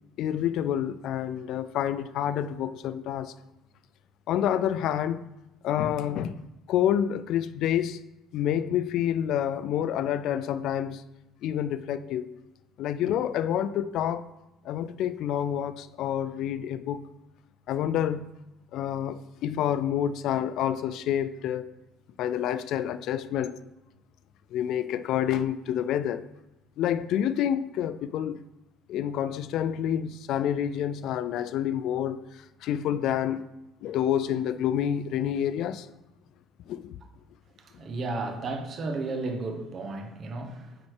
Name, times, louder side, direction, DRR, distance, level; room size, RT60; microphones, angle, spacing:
voice 1, 0.2-3.3 4.3-5.3 5.6-6.4 6.7-8.0 8.3-11.0 11.4-12.3 12.8-14.3 14.6-17.1 17.7-18.3 18.7-21.7 22.2-23.6 24.5-26.3 26.8-28.4 28.9-32.2 32.6-33.4 33.8-35.9 36.7-36.9, left 10 dB, 60° left, 0.4 m, -28 dB
voice 2, 37.8-40.8, right 3 dB, 40° right, 1.2 m, -33 dB
9.0 x 4.2 x 4.8 m
cardioid pair, 120°, 0 cm